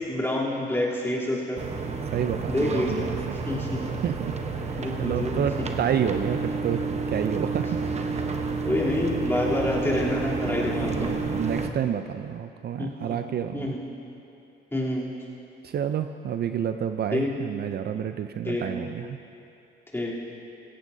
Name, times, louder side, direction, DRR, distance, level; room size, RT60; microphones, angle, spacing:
voice 1, 0.0-1.6 2.5-3.0 3.4-3.9 4.8-5.4 8.6-11.1 12.8-12.9 13.5-13.8 14.7-15.1 17.1-17.3 18.4-18.7 19.9-20.1, left 1 dB, 10° left, -6 dB, 3.2 m, -27 dB
sound 1, 1.5-11.7, right 4 dB, 35° right, 0.9 m, -30 dB
voice 2, 2.1-3.2 4.0-7.8 8.1-8.5 10.9-13.7 15.6-19.2, right 9 dB, 55° right, 9 dB, 0.5 m, -29 dB
16.5 x 15.5 x 2.7 m, 2.7 s
cardioid pair, 90°, 20 cm